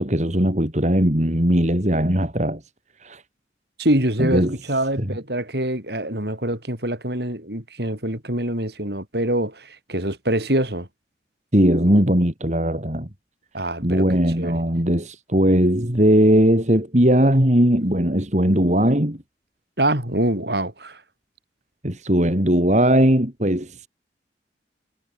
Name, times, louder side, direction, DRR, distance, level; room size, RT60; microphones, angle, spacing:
voice 1, 0.0-2.6 3.0-3.2 4.2-4.5 5.0-5.1 11.5-13.1 13.8-19.2 21.8-23.9, equal, 40° right, 3.4 m, -19 dB
voice 2, 3.8-10.9 13.5-14.0 14.4-14.5 19.8-21.0, right 1 dB, 65° right, 7.5 m, -24 dB
head